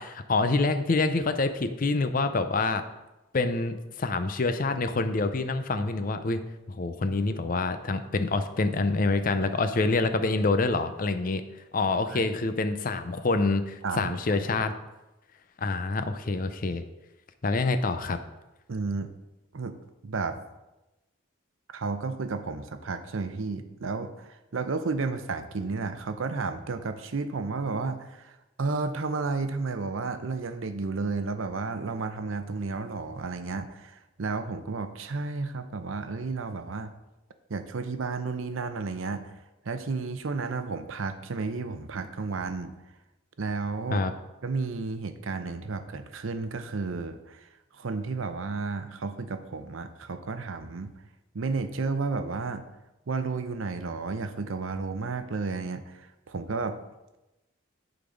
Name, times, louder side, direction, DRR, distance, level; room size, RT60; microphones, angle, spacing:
voice 1, 0.0-2.8 3.3-6.4 6.7-11.4 11.7-14.7 15.6-16.8 17.4-18.2 43.9-44.1, left 3 dB, 45° left, 9 dB, 0.5 m, -26 dB
voice 2, 13.8-14.5 18.7-19.1 19.5-19.8 20.0-20.4 21.7-36.9 37.5-39.4 39.6-42.7 43.4-44.0 44.4-47.5 47.7-50.9 51.3-52.6 53.1-56.8, right 4 dB, 75° right, 9 dB, 0.6 m, -32 dB
10.0 x 4.0 x 5.1 m, 1.0 s
head